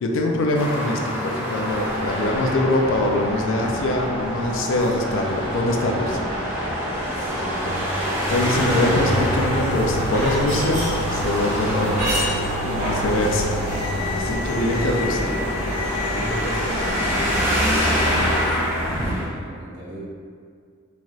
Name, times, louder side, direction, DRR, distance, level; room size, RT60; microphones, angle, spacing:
voice 1, 0.0-6.2 8.3-12.1 12.6-13.6 14.3-15.2, left 1 dB, 65° left, 1 dB, 0.4 m, -23 dB
Traffic noise roadway noise, 0.5-19.2, equal, 10° right, 0.4 m, -28 dB
sound 1, 1.7-18.3, equal, 25° left, 1.0 m, -30 dB
voice 2, 7.1-7.8 8.5-8.8 11.5-13.2 13.9-14.3 14.7-18.7 19.0-20.0, right 1 dB, 55° right, -8 dB, 0.8 m, -36 dB
sound 2, 8.2-18.4, equal, 35° right, 1.0 m, -28 dB
3.2 x 2.5 x 2.3 m, 2.2 s
head